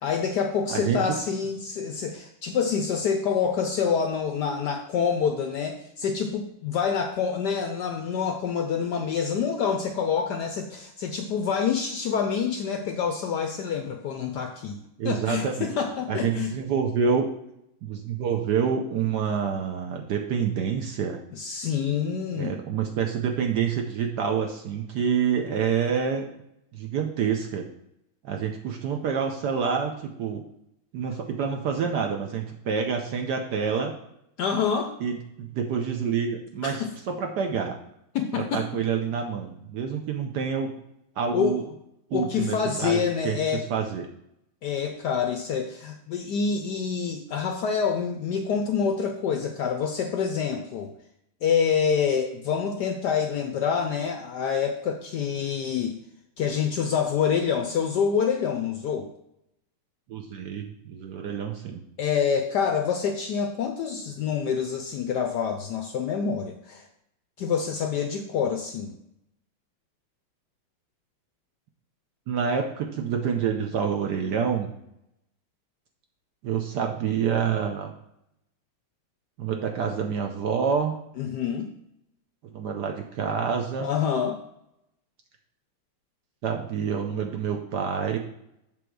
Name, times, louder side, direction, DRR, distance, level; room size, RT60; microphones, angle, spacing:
voice 1, 0.0-14.8 15.0-16.5 21.3-22.6 34.4-34.9 36.6-36.9 38.1-38.6 41.3-41.6 42.1-43.6 44.6-50.9 51.4-56.0 56.4-59.1 62.0-66.9 67.4-69.0 81.2-81.7 83.8-84.4, left 6 dB, 75° left, 5 dB, 1.0 m, -27 dB
voice 2, 0.7-1.1 15.0-15.8 16.1-17.3 17.8-21.2 22.4-26.3 26.7-27.7 28.2-30.4 30.9-33.9 35.0-37.8 38.3-40.7 41.2-41.6 42.1-43.4 43.7-44.1 60.1-61.8 72.3-74.8 76.4-77.9 79.4-81.0 82.5-83.9 86.4-88.2, right 6 dB, 70° right, 3 dB, 1.0 m, -27 dB
7.7 x 3.5 x 6.1 m, 0.79 s
omnidirectional pair, 2.3 m